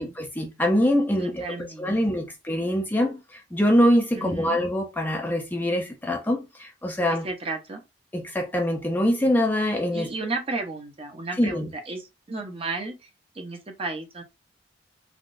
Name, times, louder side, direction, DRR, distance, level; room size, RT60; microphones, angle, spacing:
voice 1, 0.0-7.3 8.1-10.1 11.4-11.7, equal, 10° left, 0.5 m, -24 dB
voice 2, 1.2-2.0 4.1-4.6 7.2-7.8 9.9-13.1 13.3-14.2, right 3 dB, 30° right, 0.7 m, -33 dB
3.5 x 2.3 x 2.5 m
head